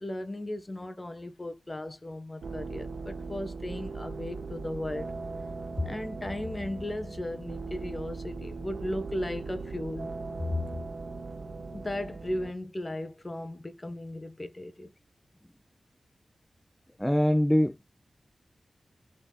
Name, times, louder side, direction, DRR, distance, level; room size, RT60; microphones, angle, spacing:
voice 1, 0.0-5.1 5.8-10.1 10.5-10.6 11.7-14.9, left 1 dB, 20° left, 1.4 m, -36 dB
sound 1, 2.4-12.5, right 4 dB, 80° right, 2.2 m, -39 dB
voice 2, 17.0-17.9, equal, 5° left, 0.3 m, -23 dB
7.1 x 5.2 x 4.1 m
wide cardioid pair, 125°, 0 cm